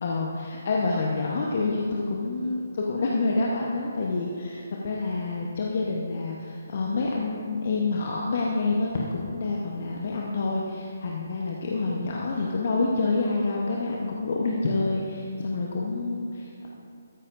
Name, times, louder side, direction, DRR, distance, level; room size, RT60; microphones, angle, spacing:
voice 1, 0.0-16.7, left 3 dB, 55° left, -2 dB, 0.9 m, -27 dB
13.5 x 9.7 x 2.6 m, 2.5 s
figure-of-eight pair, 145°, 0 cm